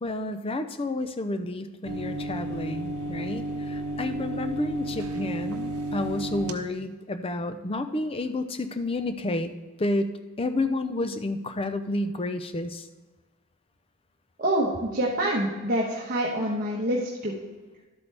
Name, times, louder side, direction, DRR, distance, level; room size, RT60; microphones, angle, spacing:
voice 1, 0.0-9.5 9.8-10.1 10.4-12.9, left 2 dB, 25° left, 9 dB, 0.5 m, -30 dB
sound 1, 1.8-6.5, right 1 dB, 80° right, 0.9 m, -32 dB
voice 2, 14.4-17.3, right 1 dB, 40° right, -4 dB, 1.2 m, -26 dB
12.0 x 8.1 x 3.4 m, 1.2 s
head